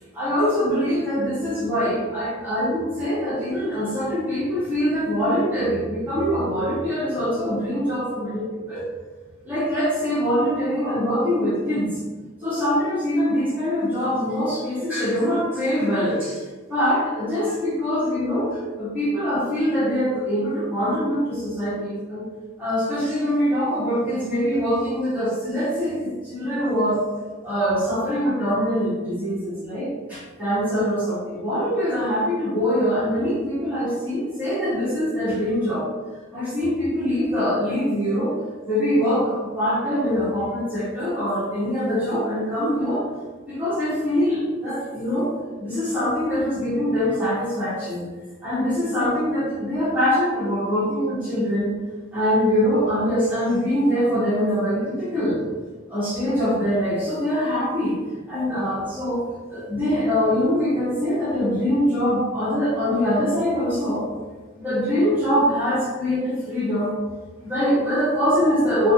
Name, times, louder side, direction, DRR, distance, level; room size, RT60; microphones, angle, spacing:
voice 1, 0.1-8.8 9.4-12.0 12.4-16.4 16.7-22.2 22.6-27.0 27.4-35.9 36.3-38.4 38.6-43.1 43.5-45.3 45.6-48.0 48.4-51.7 52.1-55.4 55.9-57.9 58.3-59.2 59.5-64.1 64.6-66.9 67.4-68.9, equal, 10° right, -11 dB, 1.1 m, -23 dB
2.4 x 2.2 x 2.8 m, 1.3 s
head